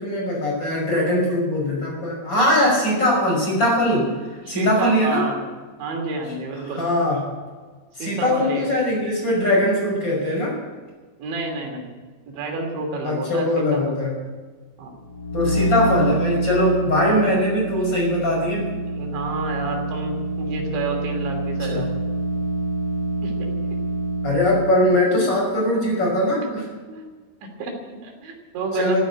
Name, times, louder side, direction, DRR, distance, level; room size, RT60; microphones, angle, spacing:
voice 1, 0.0-5.2 6.8-7.2 8.0-10.6 13.0-14.1 15.3-18.7 21.6-21.8 24.2-26.6 28.7-29.1, left 1 dB, 25° left, -2 dB, 6.2 m, -21 dB
voice 2, 4.5-5.4 5.8-6.8 8.0-8.7 11.2-11.9 12.3-13.8 14.8-15.0 17.0-17.3 19.0-21.9 23.2-23.5 25.1-25.3 26.9-27.1 27.6-29.1, right 3 dB, 80° right, 2 dB, 5.3 m, -29 dB
sound 1, 15.0-24.9, right 2 dB, 65° left, 1.7 m, -26 dB
14.5 x 10.5 x 9.3 m, 1.4 s
omnidirectional pair, 5.2 m